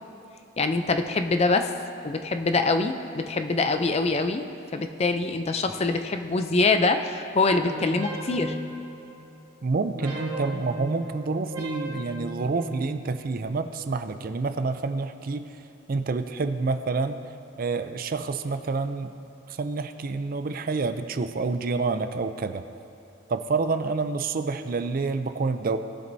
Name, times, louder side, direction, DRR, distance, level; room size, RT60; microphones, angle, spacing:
voice 1, 0.6-1.7 2.0-4.4 4.7-8.6, left 3 dB, 30° left, 7 dB, 0.5 m, -24 dB
sound 1, 7.5-9.5 9.9-13.5, right 1 dB, 85° right, 2.6 m, -36 dB
voice 2, 9.6-15.5 15.9-17.2 17.6-19.1 19.5-22.6 23.3-25.8, right 4 dB, 45° right, 10 dB, 0.4 m, -28 dB
18.5 x 7.7 x 2.7 m, 2.6 s
head